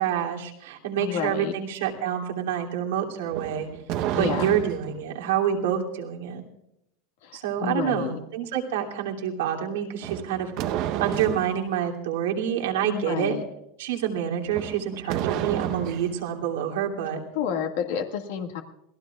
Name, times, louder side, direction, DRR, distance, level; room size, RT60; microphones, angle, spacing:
voice 1, 0.0-3.7 4.1-6.4 7.3-10.5 11.0-13.4 13.8-17.2, right 9 dB, 85° right, 0 dB, 2.8 m, -27 dB
voice 2, 0.9-1.5 4.1-4.6 7.2-8.2 12.8-13.4 17.3-18.6, left 7 dB, 75° left, 3 dB, 1.9 m, -30 dB
sound 1, 3.3-5.0 10.0-11.6 14.4-16.2, right 11 dB, 55° right, 0.9 m, -31 dB
27.0 x 18.0 x 2.4 m, 0.82 s
supercardioid pair, 135°, 0 cm